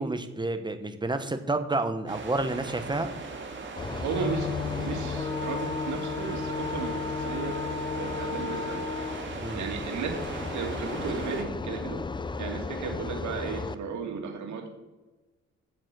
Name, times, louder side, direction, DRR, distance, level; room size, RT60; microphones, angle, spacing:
voice 1, 0.0-3.1 9.4-9.7, right 2 dB, 15° right, 8 dB, 1.1 m, -29 dB
sound 1, 2.1-11.4, right 3 dB, 40° right, 2.4 m, -39 dB
sound 2, 3.8-13.7, left 4 dB, 15° left, 0.5 m, -34 dB
voice 2, 3.9-4.5 4.8-8.8 9.5-12.0 12.4-14.7, right 5 dB, 70° right, 3 dB, 2.4 m, -35 dB
Electric guitar, 4.1-12.0, left 8 dB, 80° left, 1.5 m, -40 dB
9.0 x 7.6 x 6.2 m, 1.2 s
cardioid pair, 90°, 30 cm